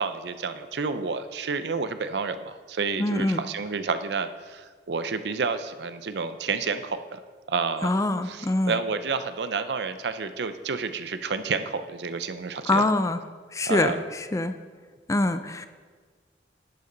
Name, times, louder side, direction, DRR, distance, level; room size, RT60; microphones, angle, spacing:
voice 1, 0.0-7.2 7.5-12.9 13.6-14.0, right 4 dB, 70° right, 10 dB, 0.6 m, -30 dB
voice 2, 3.0-3.4 7.8-8.8 12.7-13.2 13.5-13.9 14.3-14.5 15.1-15.7, left 2 dB, 20° left, 10 dB, 0.4 m, -24 dB
11.0 x 8.4 x 3.9 m, 1.5 s
head